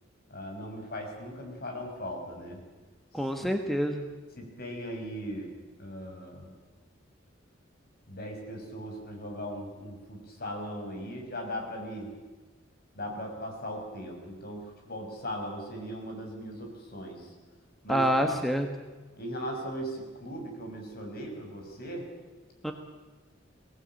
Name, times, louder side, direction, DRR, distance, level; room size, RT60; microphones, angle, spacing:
voice 1, 0.3-2.6 4.4-5.5 5.8-6.5 8.1-12.1 12.9-17.3 17.8-18.3 19.2-22.0, equal, 50° left, 2 dB, 6.0 m, -38 dB
voice 2, 3.1-4.1 17.9-18.7 22.6-22.7, equal, ahead, 4 dB, 1.4 m, -27 dB
23.0 x 18.5 x 9.0 m, 1.3 s
head